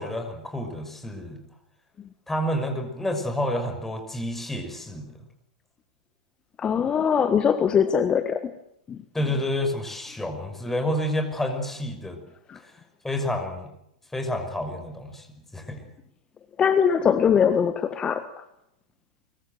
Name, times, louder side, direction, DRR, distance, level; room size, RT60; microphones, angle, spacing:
voice 1, 0.0-1.4 2.3-5.1 9.1-12.2 13.0-13.7 14.1-15.3 15.5-15.9, left 1 dB, 5° left, 5 dB, 6.0 m, -29 dB
voice 2, 6.6-8.4 8.9-9.0 16.6-18.2, left 7 dB, 20° left, 11 dB, 1.5 m, -21 dB
24.0 x 23.0 x 7.9 m, 0.80 s
figure-of-eight pair, 100°, 4 cm